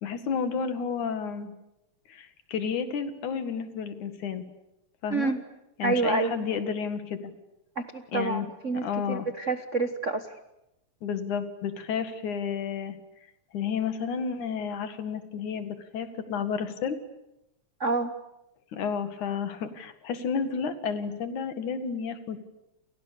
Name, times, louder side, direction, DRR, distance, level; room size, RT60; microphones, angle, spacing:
voice 1, 0.0-1.5 2.1-4.4 5.0-5.3 5.8-7.3 8.1-9.3 11.0-13.0 13.5-17.0 18.7-22.4, left 6 dB, 85° left, 9 dB, 3.4 m, -31 dB
voice 2, 5.1-5.4 5.8-6.3 7.8-10.3 17.8-18.1, right 3 dB, 60° right, 9 dB, 0.8 m, -28 dB
30.0 x 28.5 x 6.9 m, 0.89 s
omnidirectional pair, 3.4 m